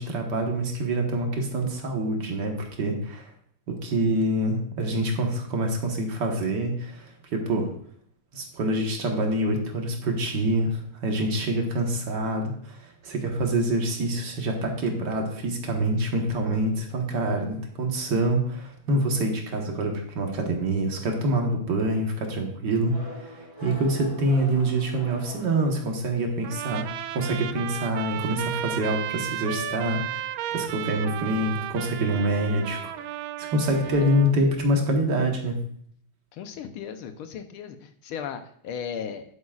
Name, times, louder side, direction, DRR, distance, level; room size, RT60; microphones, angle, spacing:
voice 1, 0.0-3.3 3.7-7.7 8.3-23.1 23.6-26.8 27.1-32.9 33.4-35.6, right 1 dB, 55° right, 2 dB, 1.9 m, -26 dB
sound 1, 22.9-26.4, equal, 25° right, 3.0 m, -43 dB
Trumpet, 26.4-34.3, right 11 dB, 75° right, 1.3 m, -34 dB
voice 2, 33.8-34.2 36.3-39.2, left 7 dB, 80° left, 8 dB, 1.7 m, -36 dB
10.0 x 8.0 x 2.4 m, 0.63 s
omnidirectional pair, 2.3 m